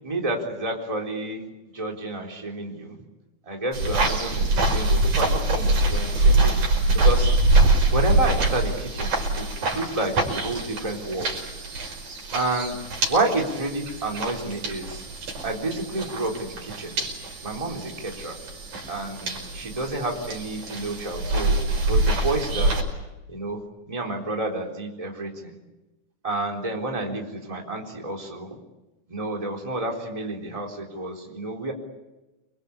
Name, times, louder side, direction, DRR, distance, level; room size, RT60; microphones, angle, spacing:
voice 1, 0.0-1.5 1.7-3.0 3.4-6.6 6.9-7.3 7.9-11.3 12.3-12.8 13.1-15.1 15.4-17.0 17.4-18.4 18.9-22.8 23.3-25.6 26.2-28.5 29.1-31.7, right 2 dB, 10° right, 1 dB, 3.7 m, -30 dB
sound 1, 3.7-22.8, right 2 dB, 85° right, 6.7 m, -24 dB
29.0 x 22.5 x 8.5 m, 1.1 s
omnidirectional pair, 3.5 m